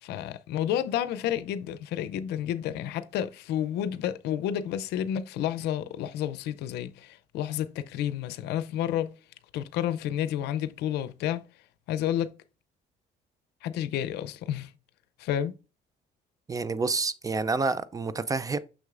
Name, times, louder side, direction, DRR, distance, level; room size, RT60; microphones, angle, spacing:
voice 1, 0.0-9.1 9.5-11.4 11.9-12.3 13.6-14.7 15.2-15.5, left 10 dB, 80° left, 0.5 m, -30 dB
voice 2, 16.5-18.6, right 3 dB, 20° right, 0.4 m, -28 dB
6.3 x 6.2 x 2.4 m
cardioid pair, 110°, 17 cm